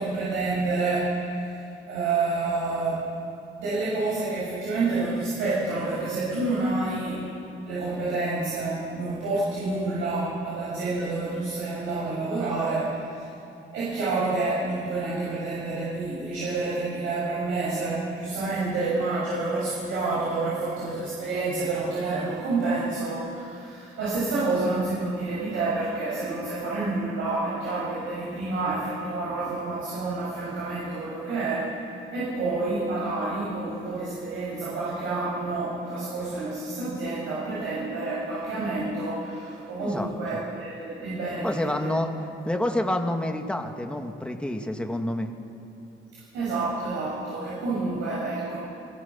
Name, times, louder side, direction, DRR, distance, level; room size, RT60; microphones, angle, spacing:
voice 1, 0.0-3.1 3.6-7.3 7.6-13.3 13.7-31.8 32.1-41.9 46.1-48.6, right 3 dB, 85° right, -8 dB, 7.7 m, -28 dB
voice 2, 41.4-42.1 42.4-45.3, left 1 dB, 5° left, 3 dB, 2.3 m, -28 dB
29.5 x 22.5 x 6.0 m, 2.8 s
cardioid pair, 90°, 20 cm